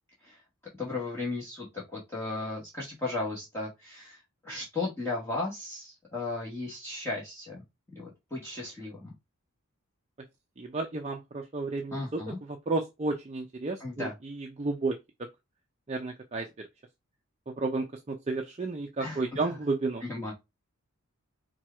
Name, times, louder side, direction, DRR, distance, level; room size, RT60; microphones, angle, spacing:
voice 1, 0.8-7.6 7.9-9.1 11.9-12.4 13.8-14.1 19.0-19.6 20.1-20.3, left 2 dB, 10° left, 1.3 m, -35 dB
voice 2, 10.6-15.3 15.9-16.7 17.5-20.0, right 3 dB, 30° right, 0.5 m, -32 dB
4.5 x 2.3 x 4.3 m
head